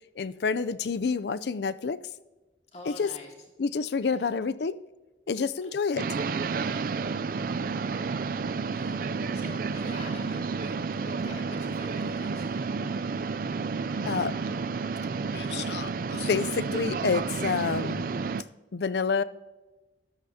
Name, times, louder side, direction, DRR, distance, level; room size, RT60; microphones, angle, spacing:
voice 1, 0.2-2.0 2.9-3.1 3.6-4.8 5.3-6.0 14.0-14.3 15.3-18.1 18.7-19.2, left 5 dB, 65° left, 15 dB, 0.4 m, -28 dB
voice 2, 2.7-3.3 4.1-4.3 5.4-5.7 6.6-7.0 8.7-9.0 9.3-10.8 11.0-12.8, left 2 dB, 35° left, 0 dB, 2.4 m, -46 dB
sound 1, 6.0-18.4, right 4 dB, 50° right, 0.3 m, -31 dB
13.5 x 12.0 x 2.8 m, 1.1 s
head